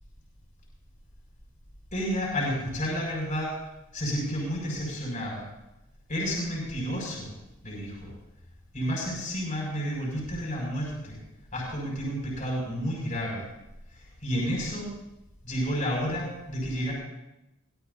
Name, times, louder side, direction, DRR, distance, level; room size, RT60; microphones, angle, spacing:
voice 1, 1.9-3.6 3.9-5.4 6.1-7.3 7.6-8.1 8.7-11.2 11.5-13.5 13.9-14.9 15.4-16.9, equal, 40° left, -3 dB, 6.7 m, -31 dB
23.5 x 18.0 x 2.8 m, 0.93 s
head